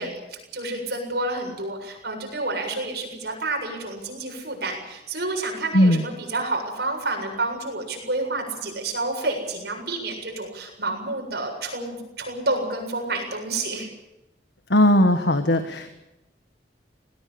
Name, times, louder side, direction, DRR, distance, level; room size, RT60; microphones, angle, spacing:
voice 1, 0.0-13.9, right 2 dB, 65° right, 2 dB, 7.5 m, -29 dB
voice 2, 14.7-15.9, left 1 dB, 75° left, 8 dB, 1.6 m, -18 dB
20.5 x 19.0 x 8.8 m, 0.93 s
head